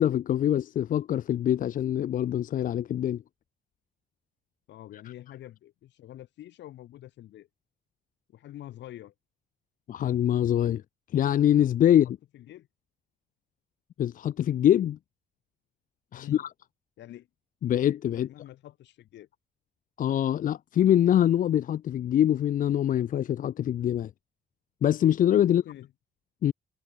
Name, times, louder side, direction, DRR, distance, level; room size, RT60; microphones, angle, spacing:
voice 1, 0.0-3.2 9.9-10.8 11.1-12.2 14.0-15.0 16.1-16.5 17.6-18.3 20.0-24.1 24.8-25.6 26.4-26.5, left 11 dB, 50° left, 0.6 m, -24 dB
voice 2, 4.7-7.5 8.3-9.1 12.3-12.7 16.1-16.4 17.0-17.3 18.2-19.3 25.5-25.9, left 13 dB, 80° left, 5.5 m, -46 dB
cardioid pair, 160°, 18 cm